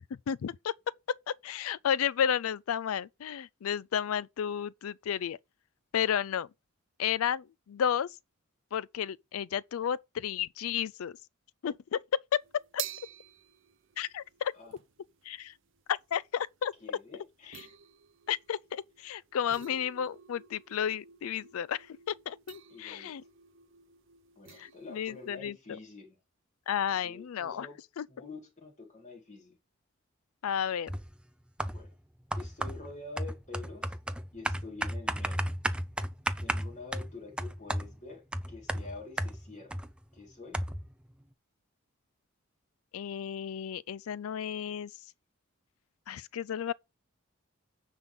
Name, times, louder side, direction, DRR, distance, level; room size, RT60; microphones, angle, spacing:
voice 1, 0.3-0.7 1.3-5.4 5.9-6.5 7.0-8.1 8.7-11.2 11.6-12.4 12.7-12.8 14.0-14.5 15.3-15.5 15.9-16.7 18.3-23.2 24.6-25.5 26.7-27.7 28.0-28.1 30.4-30.9 42.9-44.9 46.1-46.7, left 8 dB, 80° left, 0.4 m, -32 dB
sound 1, 12.4-25.4, right 12 dB, 60° right, 0.5 m, -49 dB
voice 2, 16.8-17.7 22.7-23.1 24.4-26.2 26.9-27.8 28.1-29.6 31.6-31.9 32.3-34.0 34.3-35.5 36.4-39.8 40.1-40.6, left 3 dB, 35° left, 2.3 m, -47 dB
sound 2, 30.9-31.1 31.6-31.9 32.3-39.9 40.2-40.3 40.5-40.9, right 1 dB, 5° right, 0.4 m, -34 dB
9.8 x 3.7 x 5.5 m
head